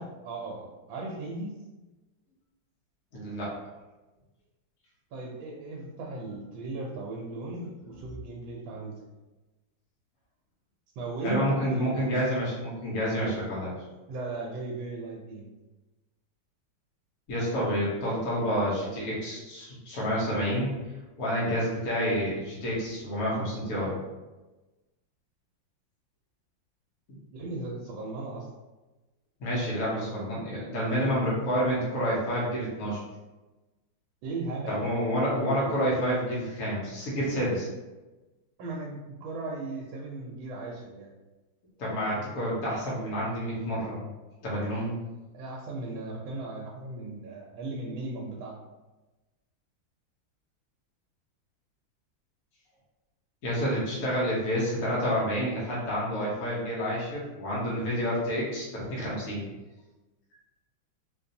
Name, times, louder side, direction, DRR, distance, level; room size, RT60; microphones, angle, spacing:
voice 1, 0.0-1.5 5.1-9.1 11.0-12.1 14.1-15.5 27.3-28.5 34.2-34.9 38.6-41.1 45.3-48.5, right 2 dB, 80° right, -2 dB, 1.3 m, -37 dB
voice 2, 3.1-3.5 11.2-13.7 17.3-20.7 21.2-24.0 27.1-27.2 29.4-33.0 34.7-37.7 41.8-44.1 44.4-45.0 53.4-59.5, equal, 55° left, -6 dB, 1.3 m, -29 dB
4.1 x 2.6 x 2.6 m, 1.1 s
omnidirectional pair, 2.2 m